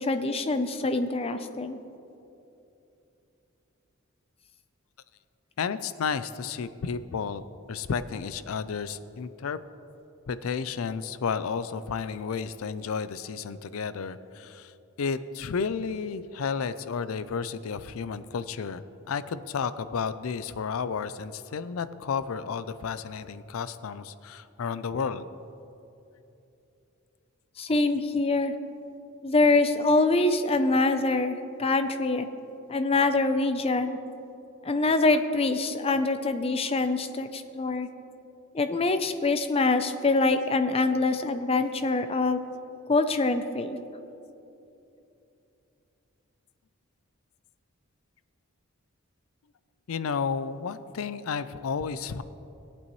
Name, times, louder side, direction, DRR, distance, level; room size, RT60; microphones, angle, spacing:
voice 1, 0.0-1.8 27.6-28.5 29.2-32.3 32.7-34.0 34.6-37.9 38.5-42.4 42.9-43.8, left 3 dB, 25° left, 9 dB, 0.5 m, -25 dB
voice 2, 5.6-7.4 7.7-9.6 10.3-14.7 15.0-25.3 49.9-52.2, left 6 dB, 75° left, 14 dB, 0.4 m, -32 dB
18.0 x 8.5 x 3.1 m, 2.9 s
head